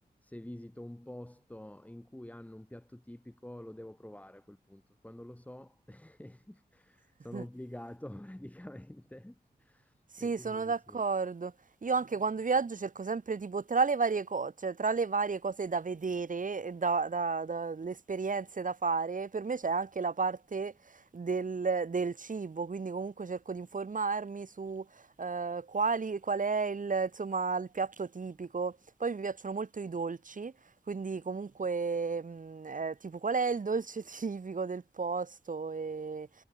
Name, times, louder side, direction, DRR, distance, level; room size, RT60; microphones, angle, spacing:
voice 1, 0.2-11.0, left 1 dB, 10° left, 6.2 m, -47 dB
voice 2, 10.1-11.5 11.8-30.5 30.9-36.3, right 4 dB, 50° right, 4.1 m, -33 dB
wide cardioid pair, 110°, 17 cm